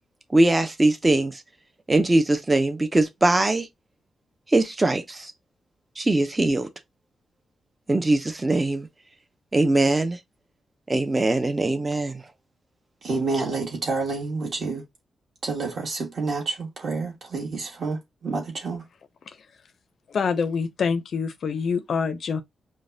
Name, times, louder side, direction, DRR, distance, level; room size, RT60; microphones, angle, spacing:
voice 1, 0.3-1.4 1.9-3.7 4.5-5.3 6.0-6.7 7.9-8.9 9.5-10.2 10.9-12.2, right 2 dB, 15° right, 0.5 m, -21 dB
voice 2, 13.0-14.8 15.4-18.9, right 3 dB, 40° right, 1.3 m, -29 dB
voice 3, 20.1-22.4, left 5 dB, 50° left, 0.5 m, -26 dB
5.1 x 2.1 x 2.6 m
wide cardioid pair, 175°, 0 cm